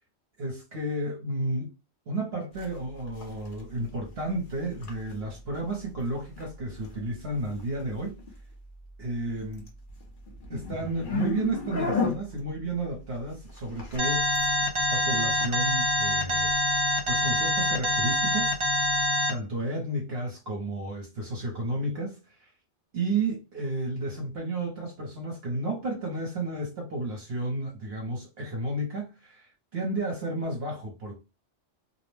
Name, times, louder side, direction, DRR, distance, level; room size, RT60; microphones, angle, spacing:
voice 1, 0.4-1.7 2.1-8.2 9.0-9.7 10.5-14.3 14.9-16.8 17.1-18.5 19.3-22.5 22.9-31.2, right 2 dB, 65° right, 0.9 m, -32 dB
sound 1, 2.5-19.1, left 3 dB, 55° left, 0.8 m, -38 dB
Alarm, 14.0-19.3, left 1 dB, 35° right, 0.5 m, -25 dB
2.5 x 2.0 x 3.1 m
omnidirectional pair, 1.2 m